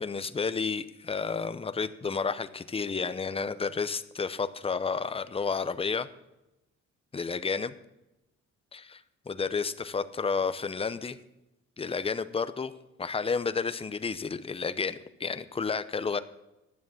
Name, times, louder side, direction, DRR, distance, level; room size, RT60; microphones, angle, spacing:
voice 1, 0.0-6.1 7.1-7.7 8.7-9.0 9.3-11.2 11.8-12.7 13.0-16.2, left 5 dB, 20° left, 12 dB, 0.6 m, -31 dB
10.5 x 7.3 x 7.0 m, 0.95 s
cardioid pair, 90°, 30 cm